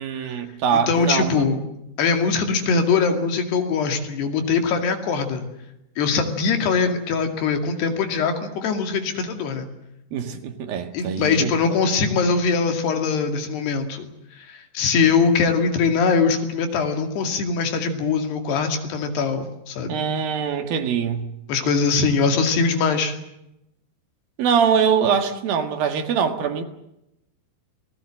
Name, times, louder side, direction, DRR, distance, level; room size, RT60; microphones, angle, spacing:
voice 1, 0.0-1.5 10.1-11.5 19.9-21.3 24.4-26.6, right 7 dB, 65° right, 3.2 m, -23 dB
voice 2, 0.7-1.6 2.0-5.4 6.0-9.7 10.9-14.1 14.3-20.0 21.5-23.2, left 5 dB, 75° left, 4.4 m, -22 dB
27.0 x 19.0 x 7.6 m
omnidirectional pair, 4.9 m